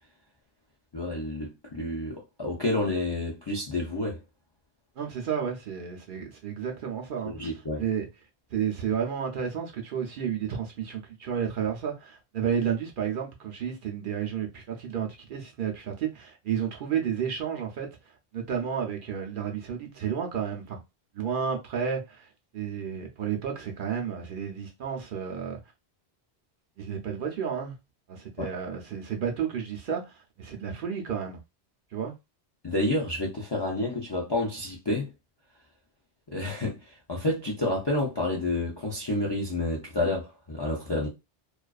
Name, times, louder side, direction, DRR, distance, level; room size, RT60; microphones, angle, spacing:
voice 1, 0.9-4.2 7.3-7.8 28.4-28.5 32.6-35.1 36.3-41.1, left 2 dB, 40° left, 0.4 m, -29 dB
voice 2, 5.0-7.5 7.8-8.1 8.5-17.9 18.3-20.8 21.1-22.3 22.5-25.6 26.8-27.8 28.1-31.4 31.9-32.1, right 7 dB, 60° right, 0.6 m, -31 dB
2.3 x 2.3 x 2.3 m
omnidirectional pair, 1.1 m